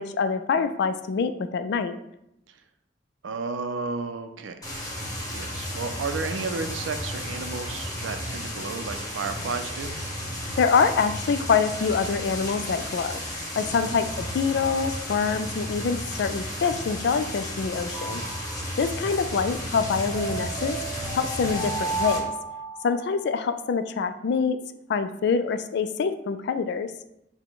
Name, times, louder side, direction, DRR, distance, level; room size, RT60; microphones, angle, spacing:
voice 1, 0.0-2.0 10.6-13.2 13.6-18.2 18.8-20.8 21.1-22.3 22.8-24.6 24.9-26.9, left 5 dB, 60° left, 10 dB, 0.3 m, -25 dB
voice 2, 3.2-4.6 5.3-10.0 13.6-14.0, right 4 dB, 90° right, 7 dB, 0.5 m, -33 dB
sound 1, 4.6-22.2, left 1 dB, 20° left, 1.0 m, -33 dB
sound 2, 17.9-19.0 20.1-23.3, right 3 dB, 5° right, 1.2 m, -34 dB
5.8 x 2.2 x 3.7 m, 0.83 s
head